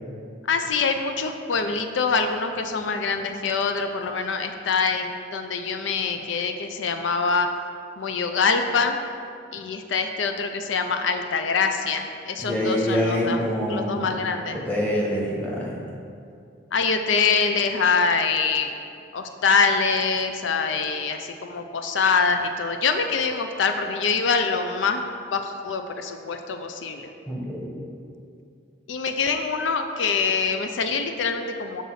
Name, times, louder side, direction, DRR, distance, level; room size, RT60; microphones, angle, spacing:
voice 1, 0.5-7.5 8.0-9.0 9.5-13.4 13.7-14.6 16.7-18.7 19.1-25.0 25.3-27.1 28.9-31.8, left 5 dB, 90° left, 6 dB, 0.5 m, -24 dB
voice 2, 12.4-14.1 14.5-15.8 27.3-27.7, equal, 10° left, -4 dB, 1.1 m, -25 dB
6.5 x 3.9 x 6.4 m, 2.4 s
head